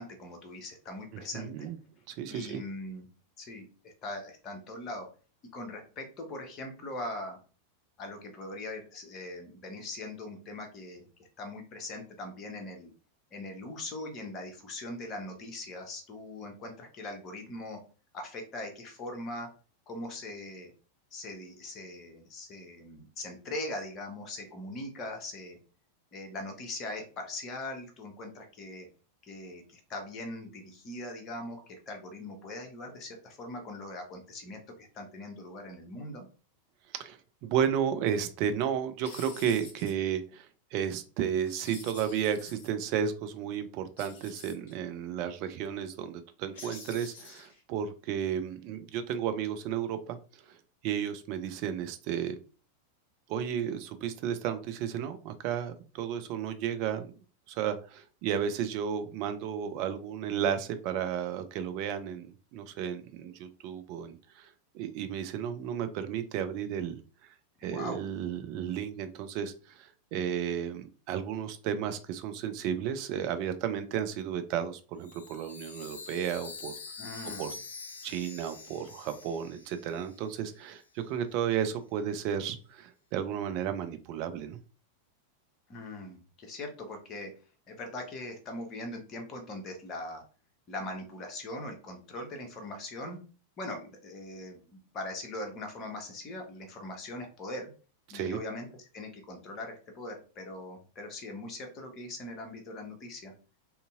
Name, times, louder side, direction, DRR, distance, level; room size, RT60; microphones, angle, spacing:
voice 1, 0.0-1.7 2.3-3.1 3.4-5.1 5.5-7.4 8.0-12.9 13.3-17.8 18.1-19.5 19.9-20.7 21.1-25.6 26.1-28.9 29.2-36.3 67.6-68.0 77.0-77.5 85.7-87.3 87.7-90.2 90.7-93.2 93.6-97.7 98.1-98.7 98.9-103.3, left 2 dB, 30° left, 4 dB, 0.8 m, -41 dB
voice 2, 1.3-1.8 2.1-2.6 36.9-50.4 50.8-52.4 53.3-57.2 57.5-67.3 67.6-76.7 77.4-77.5 78.0-84.6 98.1-98.4, right 8 dB, 45° right, 9 dB, 0.4 m, -33 dB
sound 1, 38.1-38.3 39.0-39.9 41.4-42.7 44.0-44.7 46.5-47.6, left 4 dB, 55° left, 1.3 m, -48 dB
Chime, 75.0-80.6, left 4 dB, 70° left, 0.4 m, -46 dB
2.7 x 2.6 x 2.5 m, 0.37 s
figure-of-eight pair, 90°, 0 cm